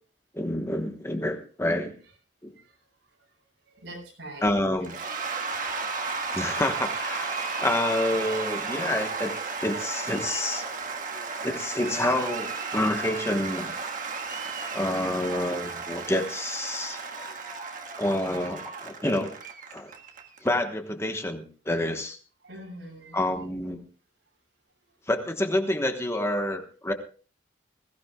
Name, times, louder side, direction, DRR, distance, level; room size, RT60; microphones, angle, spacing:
voice 1, 0.3-1.9 2.4-2.5 4.4-4.9 6.3-9.3 9.6-10.6 11.4-13.7 14.7-17.0 17.9-19.3 19.7-19.9 20.4-22.2 23.1-23.8 25.1-26.9, left 1 dB, 15° left, 5 dB, 1.2 m, -28 dB
voice 2, 3.7-5.2 22.4-23.3, right 1 dB, 85° right, -1 dB, 7.0 m, -44 dB
Cheering / Applause / Crowd, 4.8-20.5, right 4 dB, 45° right, 1.6 m, -34 dB
21.0 x 15.5 x 2.3 m, 0.38 s
head